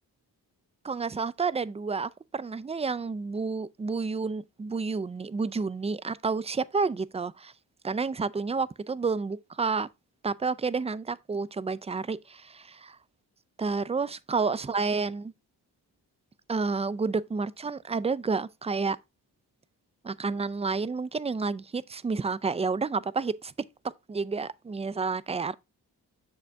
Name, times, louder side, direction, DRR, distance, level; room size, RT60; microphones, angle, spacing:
voice 1, 0.8-7.5 7.8-9.9 10.2-13.0 13.6-15.3 16.5-19.0 20.0-23.5 24.1-25.5, right 4 dB, 15° right, 0.3 m, -30 dB
6.5 x 5.1 x 3.4 m
cardioid pair, 55°, 41 cm